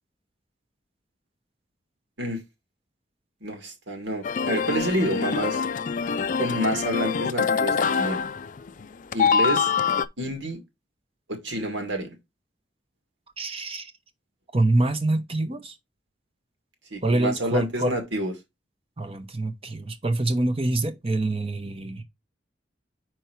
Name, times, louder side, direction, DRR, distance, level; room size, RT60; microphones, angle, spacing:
voice 1, 3.4-5.6 6.4-8.3 9.1-9.7 10.2-10.6 11.4-12.2 16.9-18.3, right 1 dB, 80° right, 2.1 m, -28 dB
sound 1, 4.2-8.9 9.1-10.1, left 6 dB, 45° left, 0.4 m, -25 dB
voice 2, 13.4-13.9 14.5-15.7 17.0-17.9 19.0-22.0, right 2 dB, 30° right, 0.9 m, -25 dB
5.3 x 4.6 x 4.5 m
head